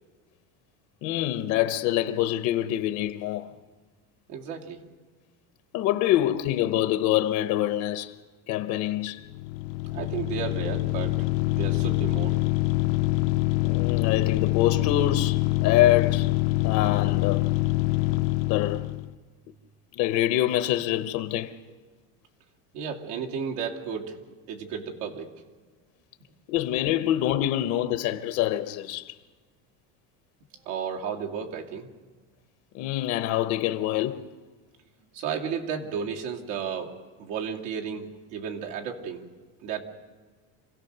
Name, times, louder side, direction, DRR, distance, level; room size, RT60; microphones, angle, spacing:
voice 1, 1.0-3.5 5.7-8.2 8.5-9.3 13.6-16.4 16.6-17.5 18.5-18.9 19.9-21.6 26.5-29.1 32.7-34.2, left 13 dB, 50° left, 0.7 m, -25 dB
voice 2, 4.3-4.9 9.9-12.4 22.7-24.1 24.5-25.3 26.8-27.0 30.6-31.9 35.1-36.9 37.2-39.3 39.6-39.8, right 7 dB, 75° right, 2.7 m, -33 dB
sound 1, 9.2-19.1, left 21 dB, 90° left, 0.8 m, -25 dB
26.5 x 17.0 x 6.6 m
cardioid pair, 175°, 38 cm